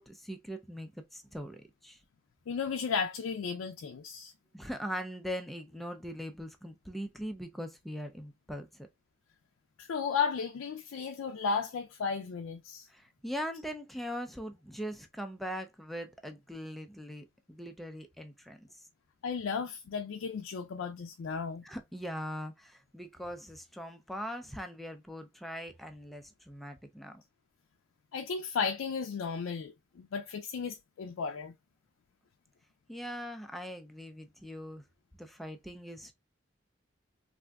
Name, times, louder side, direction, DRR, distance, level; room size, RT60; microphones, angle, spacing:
voice 1, 0.0-2.0 4.5-8.7 12.9-18.9 21.6-27.2 32.9-34.8 35.2-36.1, equal, ahead, 0.4 m, -41 dB
voice 2, 2.5-4.3 9.8-12.9 19.2-21.6 28.1-31.5, left 5 dB, 80° left, 0.4 m, -34 dB
3.4 x 2.5 x 2.3 m
head